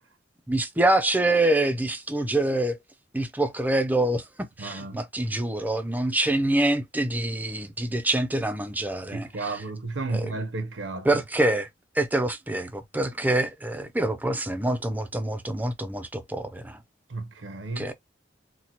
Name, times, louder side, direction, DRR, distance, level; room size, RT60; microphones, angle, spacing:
voice 1, 0.5-2.8 3.1-4.2 4.6-9.5 10.1-10.3 11.0-11.7 12.0-16.8 17.8-17.9, right 1 dB, 10° right, 0.5 m, -25 dB
voice 2, 4.6-5.0 9.1-11.2 17.1-17.9, right 3 dB, 85° right, 0.8 m, -33 dB
4.2 x 2.2 x 2.8 m
head